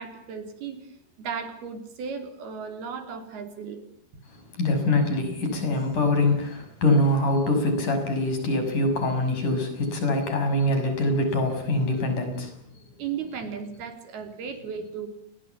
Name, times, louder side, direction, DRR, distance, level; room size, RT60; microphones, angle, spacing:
voice 1, 0.0-3.8 13.0-15.1, right 6 dB, 75° right, 8 dB, 5.3 m, -35 dB
voice 2, 4.6-12.5, left 1 dB, 50° left, 6 dB, 7.8 m, -24 dB
29.0 x 23.0 x 7.1 m, 0.66 s
omnidirectional pair, 4.6 m